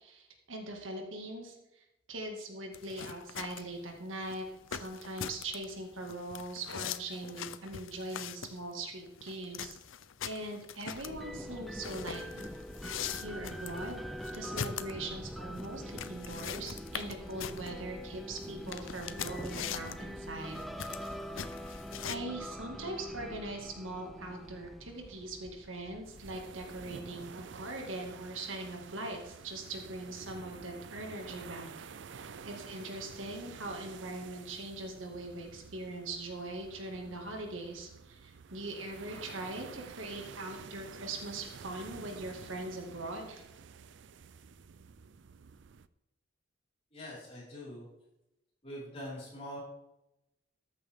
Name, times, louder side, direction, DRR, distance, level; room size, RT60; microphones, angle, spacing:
voice 1, 0.0-9.8 10.2-12.5 13.1-14.0 14.3-20.9 22.1-31.7 32.1-43.4, right 2 dB, 85° right, 2 dB, 2.2 m, -41 dB
sound 1, 2.7-22.2, left 8 dB, 85° left, 0.6 m, -42 dB
sound 2, 11.0-27.6, equal, ahead, 0.5 m, -44 dB
sound 3, 26.0-45.9, right 6 dB, 65° right, 0.5 m, -50 dB
voice 2, 46.9-47.9 48.6-49.6, equal, 30° left, -6 dB, 4.9 m, -43 dB
14.0 x 9.1 x 3.7 m, 0.88 s
head